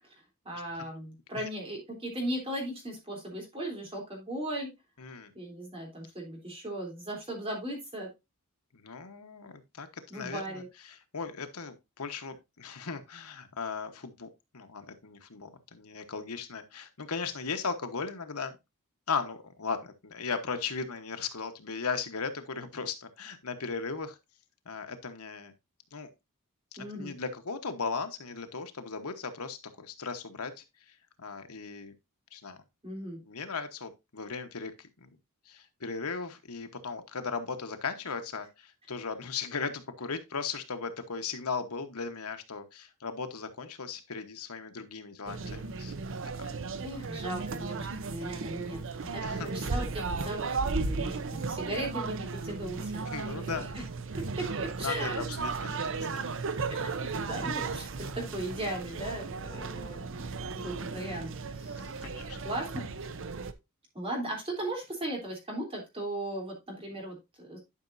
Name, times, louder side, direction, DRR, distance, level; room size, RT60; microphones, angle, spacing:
voice 1, 0.4-4.7 5.3-8.1 10.1-10.7 26.8-27.1 32.8-33.2 46.8-53.1 53.3-53.6 54.4-55.3 56.6-62.0 62.4-62.9 63.9-67.6, right 1 dB, 25° right, 3.4 m, -37 dB
voice 2, 5.0-5.3 8.7-14.3 14.5-18.5 19.1-24.2 24.6-25.5 25.9-26.1 26.7-31.9 32.3-32.6 33.2-35.1 35.4-45.9 46.4-46.5 49.2-49.5 53.1-53.7 54.8-56.3 56.9-57.0 61.8-62.4, left 5 dB, 90° left, 1.2 m, -37 dB
sound 1, 45.3-63.5, right 4 dB, 60° right, 0.7 m, -35 dB
11.5 x 5.7 x 2.6 m
head